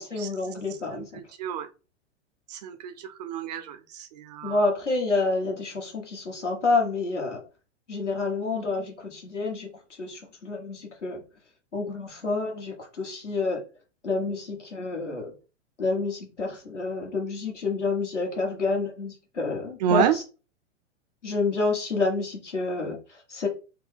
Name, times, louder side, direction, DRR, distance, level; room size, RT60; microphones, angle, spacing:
voice 1, 0.0-1.2 4.4-7.4 7.9-9.7 10.0-11.2 11.7-13.6 14.0-15.3 15.8-20.2 21.2-23.5, left 3 dB, 80° left, 1.4 m, -28 dB
voice 2, 0.9-1.7 2.5-4.6 19.8-20.2, right 8 dB, 35° right, 0.4 m, -29 dB
3.6 x 2.2 x 3.4 m
figure-of-eight pair, 100°, 36 cm